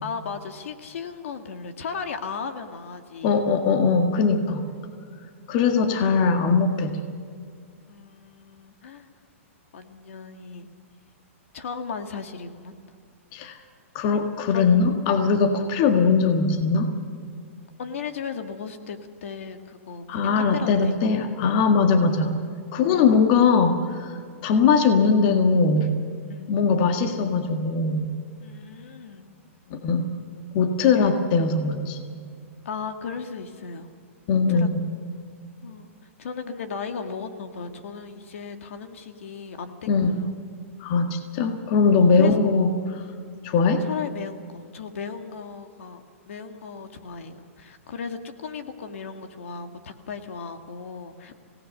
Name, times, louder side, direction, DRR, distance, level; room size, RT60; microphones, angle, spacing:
voice 1, 0.0-3.4 7.9-9.1 9.7-10.7 11.5-12.8 14.5-14.9 17.8-21.0 22.9-23.1 26.3-26.5 28.4-29.4 32.7-33.9 34.3-34.7 35.6-35.9 36.2-40.3 42.0-42.4 43.8-51.3, left 6 dB, 70° left, 7 dB, 2.0 m, -36 dB
voice 2, 3.2-4.6 5.5-7.0 13.3-13.6 13.9-16.9 20.1-22.3 22.7-25.9 26.5-28.1 29.7-30.1 30.5-32.0 34.3-34.8 39.9-40.2 40.8-43.0 43.4-43.8, left 5 dB, 35° left, 6 dB, 1.6 m, -21 dB
26.0 x 18.0 x 6.5 m, 2.2 s
hypercardioid pair, 160°, 7 cm